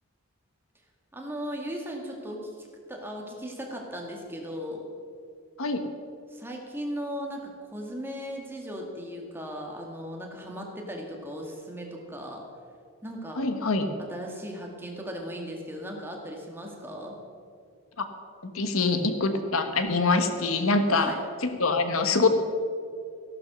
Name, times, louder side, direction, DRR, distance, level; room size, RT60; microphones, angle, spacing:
voice 1, 1.1-4.9 6.3-12.4 13.0-13.4 14.1-17.2 20.9-21.2, equal, 10° right, 0 dB, 1.9 m, -37 dB
voice 2, 13.4-13.9 18.4-21.2 21.4-22.3, left 3 dB, 70° left, 8 dB, 1.2 m, -24 dB
14.5 x 11.5 x 6.2 m, 2.3 s
head